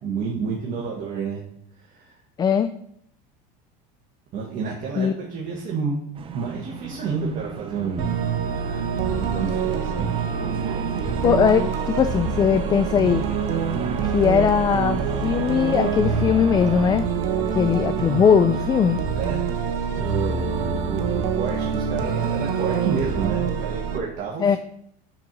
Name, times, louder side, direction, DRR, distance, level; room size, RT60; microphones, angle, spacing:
voice 1, 0.0-1.4 1.8-2.1 4.3-8.2 9.1-10.1 19.1-19.4 19.9-24.6, right 5 dB, 40° right, -2 dB, 1.6 m, -30 dB
voice 2, 2.4-2.7 5.0-5.1 11.2-13.2 14.0-17.0 17.5-19.0 24.4-24.6, left 7 dB, 20° left, 10 dB, 0.3 m, -20 dB
sound 1, 6.1-17.0, right 6 dB, 25° right, 0.7 m, -35 dB
sound 2, 8.0-24.0, right 6 dB, 55° right, 1.0 m, -26 dB
6.1 x 4.4 x 5.3 m, 0.69 s
supercardioid pair, 125°, 20 cm